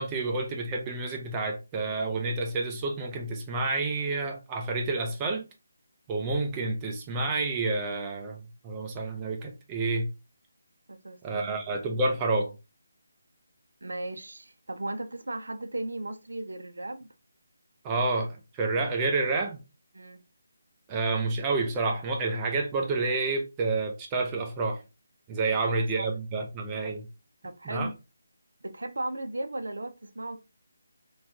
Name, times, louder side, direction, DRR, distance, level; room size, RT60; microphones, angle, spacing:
voice 1, 0.0-5.5 6.1-10.1 11.2-12.5 17.8-19.6 20.9-24.8 25.3-27.0 27.7-27.9, right 3 dB, 15° right, 0.4 m, -29 dB
voice 2, 10.9-11.5 13.8-17.1 19.9-20.2 25.9-26.1 27.4-27.9 28.6-30.4, right 2 dB, 85° right, 0.4 m, -36 dB
2.9 x 2.2 x 2.6 m
figure-of-eight pair, 165°, 0 cm